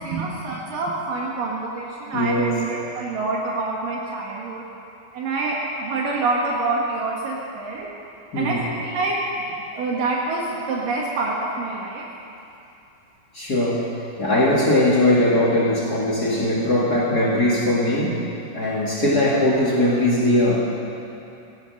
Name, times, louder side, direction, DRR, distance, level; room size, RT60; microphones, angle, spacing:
voice 1, 0.0-4.7 5.1-7.9 8.4-9.2 9.7-12.0, right 3 dB, 75° right, -3 dB, 3.0 m, -26 dB
voice 2, 2.1-2.6 8.3-8.6 13.3-13.9 14.2-18.2 18.5-20.6, left 1 dB, 30° left, -5 dB, 2.3 m, -20 dB
16.5 x 13.0 x 6.4 m, 2.7 s
omnidirectional pair, 4.1 m